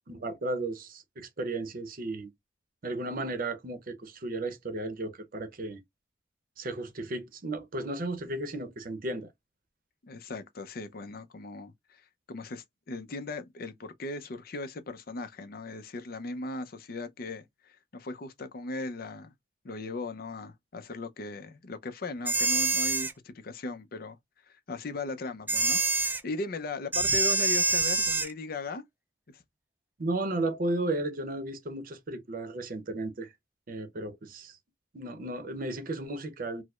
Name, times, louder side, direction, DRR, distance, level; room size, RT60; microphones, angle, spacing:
voice 1, 0.1-2.3 2.8-5.8 6.6-9.3 30.0-33.3 33.7-34.6 34.9-36.6, right 2 dB, 55° right, 0.7 m, -34 dB
voice 2, 10.0-12.0 12.3-19.3 19.6-24.2 24.5-28.8 29.3-29.4, left 3 dB, 55° left, 0.5 m, -38 dB
sound 1, 22.3-23.1 25.5-26.2 26.9-28.3, right 3 dB, 10° right, 0.3 m, -26 dB
4.6 x 2.1 x 2.3 m
head